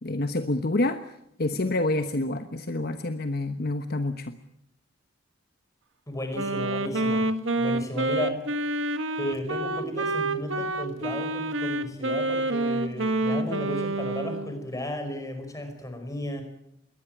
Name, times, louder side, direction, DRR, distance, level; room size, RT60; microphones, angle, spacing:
voice 1, 0.0-1.0 1.4-4.3, left 2 dB, 50° left, 8 dB, 1.1 m, -27 dB
voice 2, 6.1-7.3 7.6-8.4 9.2-16.4, left 1 dB, 15° left, 6 dB, 5.1 m, -34 dB
Wind instrument woodwind instrument, 6.3-14.5, right 2 dB, 75° right, 1.7 m, -28 dB
22.5 x 18.5 x 9.2 m, 0.78 s
head